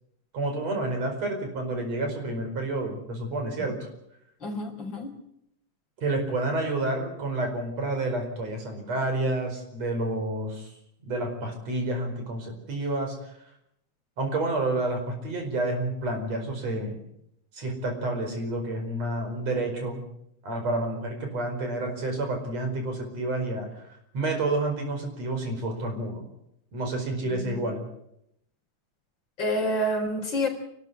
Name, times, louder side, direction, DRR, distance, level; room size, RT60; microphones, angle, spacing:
voice 1, 0.3-3.8 6.0-10.7 11.0-13.2 14.2-17.0 17.5-20.0 20.4-23.7 24.1-26.2 26.7-27.8, right 2 dB, 60° right, 4 dB, 6.0 m, -29 dB
voice 2, 4.4-5.1 27.4-27.7 29.4-30.5, equal, 40° left, 3 dB, 5.0 m, -28 dB
29.0 x 13.0 x 8.4 m, 0.77 s
omnidirectional pair, 3.3 m